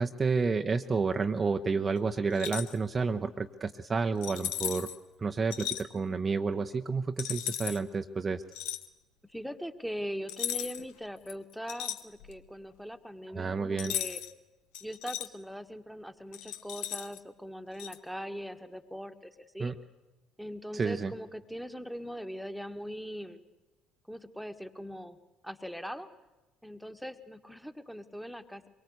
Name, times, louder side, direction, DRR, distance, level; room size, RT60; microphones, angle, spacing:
voice 1, 0.0-4.9 5.2-8.4 13.3-13.9 19.6-19.7 20.7-21.1, right 4 dB, 30° right, 7 dB, 0.9 m, -30 dB
sound 1, 2.3-2.8 4.2-5.0 5.5-5.8 7.2-7.8 8.5-8.9 10.3-10.9 11.3-12.5 13.8-14.3 14.7-15.3 16.3-17.2 17.8-18.0, left 12 dB, 65° left, 1.0 m, -36 dB
voice 2, 9.3-14.2 14.8-19.7 20.4-23.4 24.1-25.2 25.4-26.1 26.6-28.6, equal, ahead, 8 dB, 1.7 m, -41 dB
24.0 x 22.5 x 8.1 m, 1.1 s
figure-of-eight pair, 55°, 0 cm